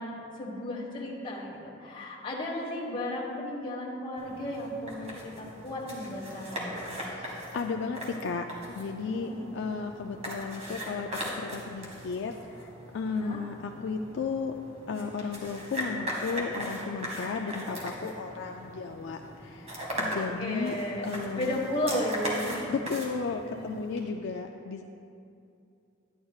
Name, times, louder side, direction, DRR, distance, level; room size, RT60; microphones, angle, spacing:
voice 1, 0.0-6.8 9.2-9.5 13.0-13.4 19.9-20.1 20.4-21.1 21.4-22.7 23.5-23.8, left 1 dB, 25° left, -5 dB, 1.5 m, -34 dB
sound 1, 4.2-24.0, equal, 35° right, 1.8 m, -39 dB
voice 2, 6.9-20.7 21.0-21.6 22.7-24.8, left 5 dB, 65° left, 4 dB, 0.4 m, -34 dB
11.0 x 11.0 x 2.4 m, 2.6 s
head